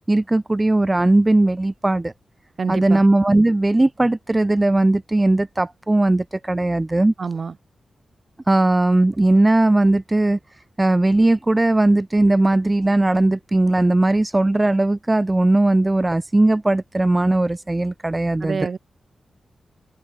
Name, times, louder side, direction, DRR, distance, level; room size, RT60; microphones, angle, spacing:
voice 1, 0.1-2.1 2.7-7.1 8.5-10.4 10.8-18.7, right 2 dB, 25° right, 0.5 m, -18 dB
voice 2, 2.6-3.0 7.2-7.5 18.4-18.8, right 5 dB, 60° right, 1.5 m, -26 dB
open air
supercardioid pair, 45°, 0 cm